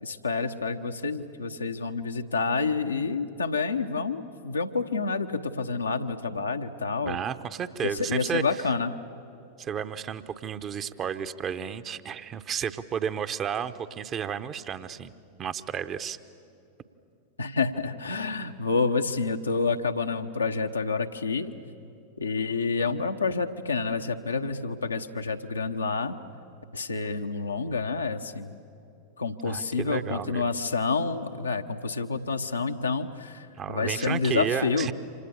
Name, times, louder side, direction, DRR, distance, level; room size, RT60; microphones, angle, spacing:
voice 1, 0.0-7.2 7.8-8.9 17.4-21.5 22.2-26.2 26.7-28.5 29.2-34.9, left 4 dB, 80° left, 5 dB, 1.1 m, -28 dB
voice 2, 7.0-8.4 9.6-15.1 15.4-16.2 29.4-30.4 33.6-34.9, right 8 dB, 30° right, 11 dB, 0.9 m, -32 dB
28.5 x 26.0 x 7.1 m, 2.7 s
figure-of-eight pair, 90°, 0 cm